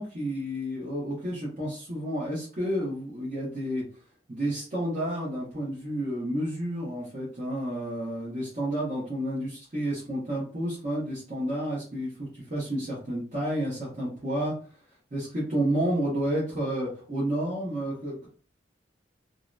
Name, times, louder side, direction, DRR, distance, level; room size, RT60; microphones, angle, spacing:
voice 1, 0.0-3.8 4.3-14.6 15.1-18.3, right 1 dB, 40° right, -6 dB, 0.8 m, -30 dB
2.7 x 2.0 x 2.2 m, 0.40 s
head